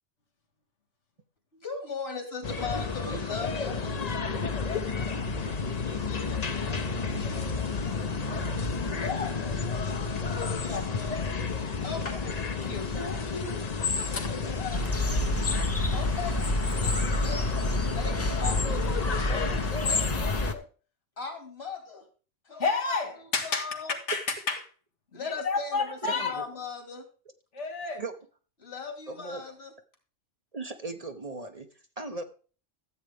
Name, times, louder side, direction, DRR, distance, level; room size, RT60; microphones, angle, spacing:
voice 1, 1.5-4.5 5.8-7.0 9.0-9.9 10.6-11.4 11.8-12.5 14.1-15.3 15.9-20.7 21.2-22.1 22.5-23.0 23.4-24.0 25.1-27.1 28.6-29.7, left 5 dB, 60° left, 2.6 m, -39 dB
sound 1, 2.4-20.5, left 4 dB, 40° left, 0.9 m, -31 dB
voice 2, 12.6-13.7 14.0-14.3 22.6-23.6 24.1-24.6 25.1-26.5 27.5-28.0, left 4 dB, 80° left, 2.0 m, -31 dB
sound 2, 14.7-20.5, left 1 dB, 15° left, 0.5 m, -29 dB
voice 3, 26.0-26.4 28.0-28.1 29.1-29.4 30.5-32.2, right 2 dB, 35° right, 0.9 m, -38 dB
13.5 x 8.0 x 3.5 m
omnidirectional pair, 1.2 m